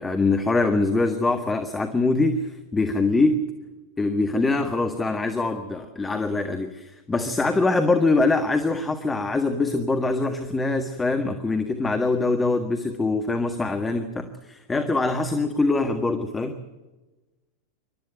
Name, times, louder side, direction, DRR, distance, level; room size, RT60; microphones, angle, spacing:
voice 1, 0.0-3.5 4.0-16.6, left 3 dB, 10° left, 6 dB, 1.6 m, -23 dB
26.0 x 13.0 x 9.3 m, 1.1 s
figure-of-eight pair, 90°, 0 cm